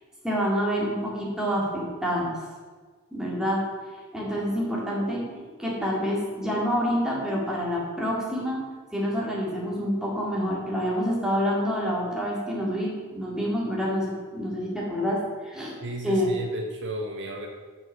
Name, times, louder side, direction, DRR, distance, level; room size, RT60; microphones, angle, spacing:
voice 1, 0.2-2.4 3.1-3.6 4.1-15.8 16.0-16.3, equal, 5° right, -4 dB, 2.1 m, -27 dB
voice 2, 15.8-17.5, right 1 dB, 60° right, 3 dB, 0.9 m, -34 dB
7.8 x 6.2 x 5.6 m, 1.5 s
head